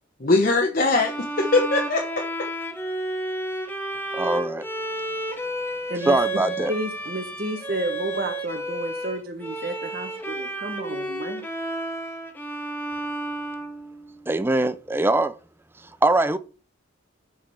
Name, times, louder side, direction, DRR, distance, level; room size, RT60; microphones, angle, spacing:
voice 1, 0.2-2.3, left 3 dB, 45° left, 1.0 m, -21 dB
Bowed string instrument, 1.0-14.4, right 1 dB, 10° left, 1.0 m, -31 dB
voice 2, 4.1-4.7 6.1-6.7 14.3-15.4 15.8-16.4, right 2 dB, 10° right, 0.4 m, -22 dB
voice 3, 6.7-11.5, right 1 dB, 50° right, 1.4 m, -31 dB
6.9 x 5.2 x 5.5 m
head